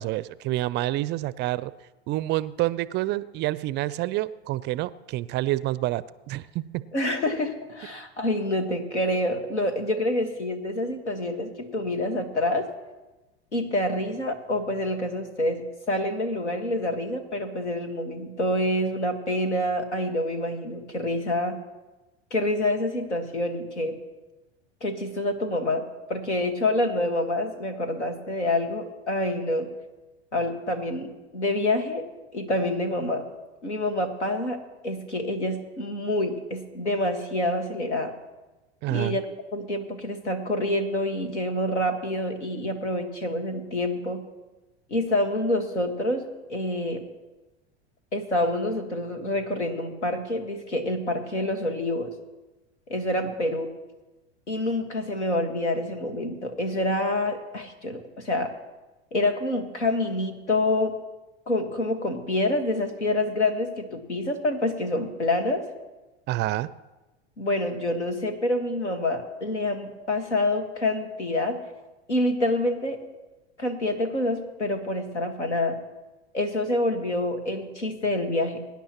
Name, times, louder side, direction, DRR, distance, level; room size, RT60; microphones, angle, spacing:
voice 1, 0.0-1.7 2.1-6.8 38.8-39.2 66.3-66.7, right 16 dB, 35° right, 18 dB, 0.4 m, -28 dB
voice 2, 6.9-12.7 13.5-21.6 22.3-24.0 24.8-25.8 26.1-29.7 30.3-32.1 32.3-33.2 33.6-38.1 38.9-39.2 39.5-44.2 44.9-47.0 48.1-52.1 52.9-53.7 54.5-58.5 59.1-61.0 61.5-65.6 67.4-71.6 72.1-73.0 73.6-75.8 76.3-78.6, left 1 dB, 90° left, 6 dB, 1.7 m, -27 dB
23.5 x 10.5 x 3.0 m, 1.1 s
hypercardioid pair, 85°, 34 cm